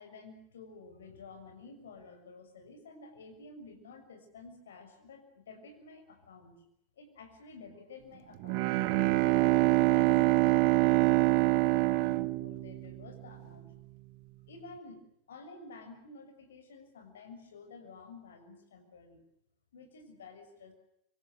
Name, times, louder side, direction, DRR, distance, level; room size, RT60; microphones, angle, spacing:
voice 1, 0.0-6.6 7.0-8.7 9.2-13.7 14.5-15.0 15.3-19.2 19.7-20.7, left 3 dB, 65° left, 5 dB, 6.7 m, -51 dB
Bowed string instrument, 8.4-13.3, right 21 dB, 45° right, 0.9 m, -25 dB
26.0 x 24.0 x 7.8 m, 0.76 s
figure-of-eight pair, 90°, 0 cm